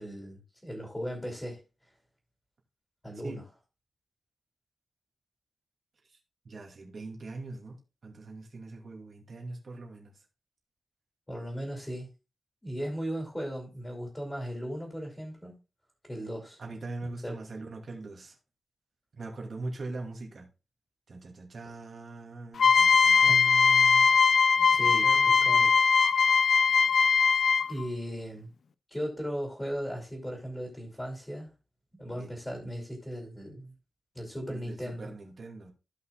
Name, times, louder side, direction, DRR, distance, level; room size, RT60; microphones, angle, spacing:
voice 1, 0.0-1.6 3.0-3.4 11.3-12.1 12.6-15.5 16.0-16.6 17.2-17.4 23.3-23.4 24.0-24.2 24.7-25.9 26.6-26.7 27.7-28.5 28.9-31.5 31.9-33.7 34.1-35.1, equal, 10° left, 2.6 m, -37 dB
voice 2, 6.4-7.8 8.0-10.1 16.6-18.4 19.2-20.5 21.1-24.0 24.6-25.7 32.2-32.3 34.5-35.7, right 2 dB, 45° right, 2.6 m, -41 dB
sound 1, 22.6-27.8, left 5 dB, 65° left, 0.5 m, -21 dB
16.0 x 5.7 x 2.4 m
wide cardioid pair, 175°, 0 cm